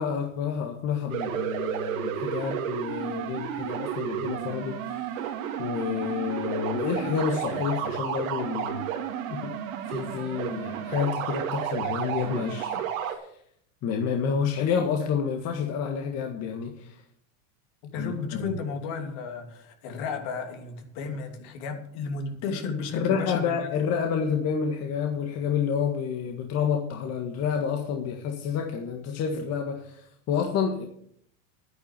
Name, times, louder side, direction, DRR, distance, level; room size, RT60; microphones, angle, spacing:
voice 1, 0.0-5.1 5.6-8.9 9.3-9.5 9.9-13.3 13.8-17.0 17.9-18.5 22.9-30.9, left 6 dB, 40° left, 3 dB, 1.7 m, -29 dB
sound 1, 1.1-13.1, right 9 dB, 75° right, 2.6 m, -32 dB
voice 2, 17.8-23.6, left 4 dB, 55° left, 4 dB, 2.9 m, -33 dB
10.5 x 10.0 x 6.7 m, 0.68 s
supercardioid pair, 130°, 40 cm